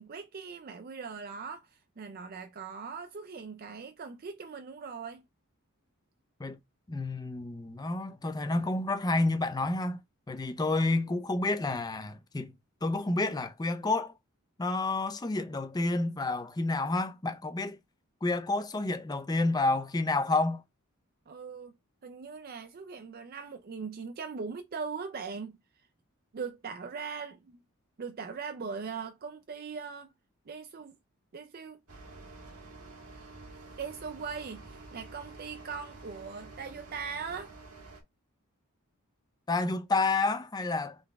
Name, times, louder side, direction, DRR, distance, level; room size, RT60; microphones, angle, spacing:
voice 1, 0.0-5.2 21.3-21.7 22.0-25.6 26.3-27.6 28.0-30.1 30.5-30.9 31.3-31.8 33.1-33.2 33.8-37.5, right 5 dB, 45° right, 0.4 m, -40 dB
voice 2, 6.9-10.0 10.3-12.5 12.8-14.1 14.6-17.8 18.2-20.6 39.5-41.0, left 2 dB, 20° left, 0.5 m, -29 dB
sound 1, 31.9-38.0, right 3 dB, 85° right, 1.5 m, -49 dB
3.9 x 3.4 x 3.5 m
head